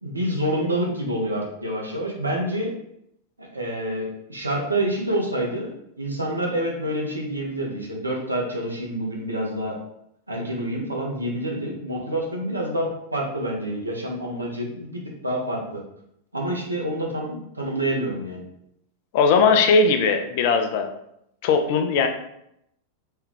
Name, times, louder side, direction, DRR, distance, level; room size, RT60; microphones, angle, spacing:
voice 1, 0.0-2.7 3.4-9.7 10.3-15.8 16.3-18.4, right 1 dB, 80° right, -1 dB, 0.7 m, -27 dB
voice 2, 19.1-20.9 21.4-22.1, left 4 dB, 50° left, 6 dB, 0.4 m, -19 dB
3.2 x 2.3 x 3.1 m, 0.77 s
figure-of-eight pair, 90°, 0 cm